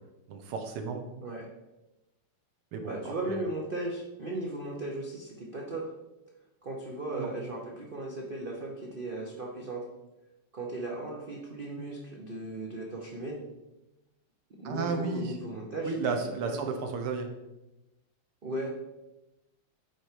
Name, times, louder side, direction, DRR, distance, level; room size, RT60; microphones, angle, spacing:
voice 1, 0.3-1.1 2.7-3.4 7.1-7.3 14.6-15.4 15.8-17.3, right 4 dB, 85° right, 5 dB, 1.8 m, -33 dB
voice 2, 2.8-5.9 6.6-9.9 10.5-13.4 14.6-15.9 16.4-16.6 18.4-18.7, right 2 dB, 65° right, -2 dB, 0.5 m, -36 dB
9.6 x 3.4 x 4.5 m, 0.98 s
omnidirectional pair, 2.3 m